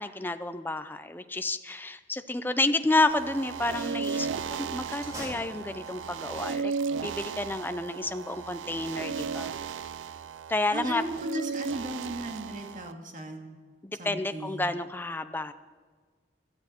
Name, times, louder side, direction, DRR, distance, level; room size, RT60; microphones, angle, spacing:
voice 1, 0.0-6.7 7.0-9.5 10.5-11.0 13.8-15.5, left 2 dB, 10° left, 10 dB, 0.5 m, -30 dB
sound 1, 3.1-12.9, right 5 dB, 90° right, 0.4 m, -35 dB
sound 2, 4.9-6.2, equal, 20° right, 3.3 m, -42 dB
voice 2, 10.7-13.6 14.0-14.7, right 1 dB, 45° right, 2 dB, 2.0 m, -36 dB
17.5 x 13.0 x 4.4 m, 1.5 s
head